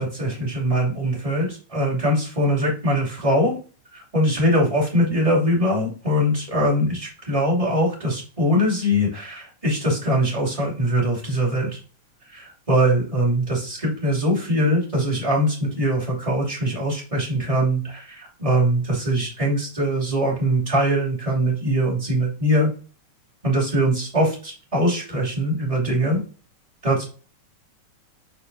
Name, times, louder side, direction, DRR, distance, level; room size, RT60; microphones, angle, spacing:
voice 1, 0.0-3.6 3.9-11.8 12.3-22.7 23.4-26.2 26.8-27.0, equal, 10° right, -6 dB, 2.4 m, -22 dB
6.5 x 4.3 x 4.0 m, 0.38 s
omnidirectional pair, 3.6 m